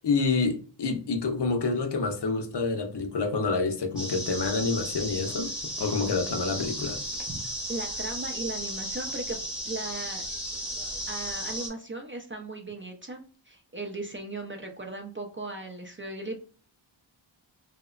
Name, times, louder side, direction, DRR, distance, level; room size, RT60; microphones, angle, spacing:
voice 1, 0.0-5.5 5.8-7.0, left 4 dB, 55° left, 0.6 m, -28 dB
sound 1, 4.0-11.7, equal, ahead, 0.7 m, -35 dB
voice 2, 7.7-9.4 9.6-10.3 11.1-16.4, right 2 dB, 30° right, 0.3 m, -37 dB
2.8 x 2.1 x 2.3 m
wide cardioid pair, 75°, 48 cm